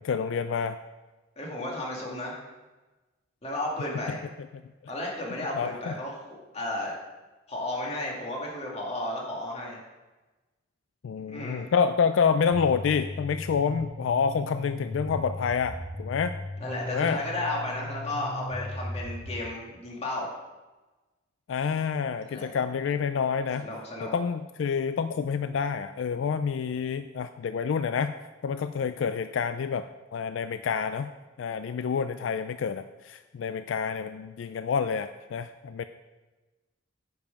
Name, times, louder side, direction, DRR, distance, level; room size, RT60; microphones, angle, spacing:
voice 1, 0.0-0.8 5.5-5.9 11.0-16.4 16.9-17.2 21.5-23.7 24.0-28.1 28.4-31.1 31.4-35.8, left 6 dB, 80° left, 10 dB, 0.3 m, -28 dB
voice 2, 1.4-2.4 3.4-4.2 4.9-6.9 7.5-9.8 11.3-11.6 16.6-20.3 22.3-22.5 23.6-24.1, left 1 dB, 35° left, -2 dB, 2.0 m, -33 dB
sound 1, 12.5-19.4, left 1 dB, 55° right, 1.3 m, -37 dB
9.2 x 5.4 x 5.2 m, 1.2 s
head